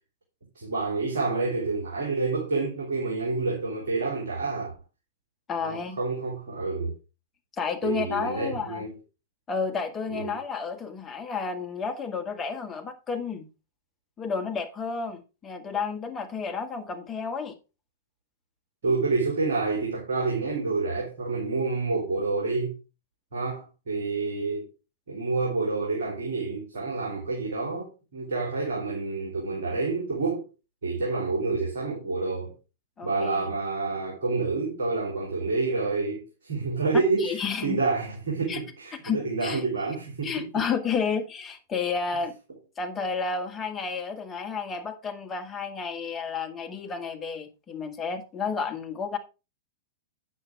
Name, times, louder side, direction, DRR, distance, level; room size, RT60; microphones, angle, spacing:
voice 1, 0.6-4.7 5.6-7.0 7.8-9.0 10.1-10.4 18.8-22.7 23.3-24.7 25.1-30.5 30.8-32.5 33.0-40.6, right 3 dB, 60° right, 4.0 m, -28 dB
voice 2, 5.5-6.0 7.6-8.8 9.5-13.5 14.2-17.6 33.0-33.4 37.2-37.8 38.5-38.6 39.0-39.6 40.2-42.3 42.8-49.2, left 5 dB, 20° left, 1.9 m, -31 dB
9.1 x 7.6 x 4.8 m
figure-of-eight pair, 100°, 0 cm